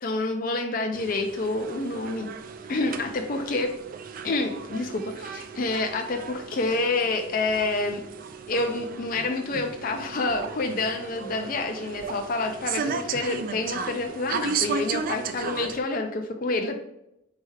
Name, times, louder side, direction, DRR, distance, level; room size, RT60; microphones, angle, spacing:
voice 1, 0.0-2.3 2.7-3.7 4.2-8.0 8.5-16.8, left 3 dB, 45° left, 4 dB, 0.4 m, -28 dB
sound 1, 0.9-15.8, right 6 dB, 45° right, 0.3 m, -35 dB
4.4 x 3.3 x 3.4 m, 0.83 s
head